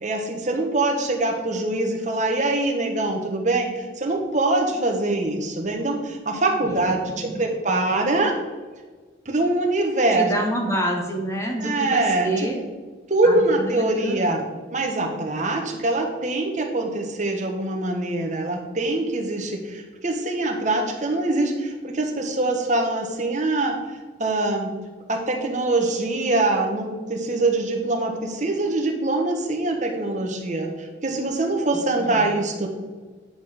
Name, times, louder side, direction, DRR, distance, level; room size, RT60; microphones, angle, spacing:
voice 1, 0.0-8.3 9.2-10.3 11.6-12.5 13.1-14.4 14.7-23.7 24.2-24.7 25.1-32.7, right 2 dB, 40° right, 1 dB, 1.4 m, -23 dB
voice 2, 10.1-12.6 13.2-14.5 32.0-32.4, right 1 dB, 15° left, 1 dB, 1.1 m, -27 dB
10.5 x 3.9 x 6.6 m, 1.4 s
head